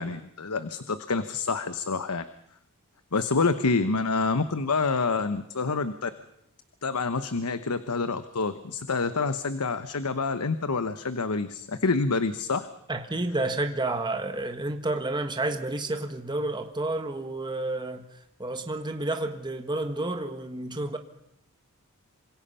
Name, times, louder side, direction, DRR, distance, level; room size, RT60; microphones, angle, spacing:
voice 1, 0.0-2.2 3.1-6.1 6.8-12.7, left 4 dB, 85° left, 1.0 m, -27 dB
voice 2, 12.9-18.1 18.4-21.0, right 2 dB, 20° right, 1.5 m, -30 dB
27.0 x 25.5 x 5.6 m
head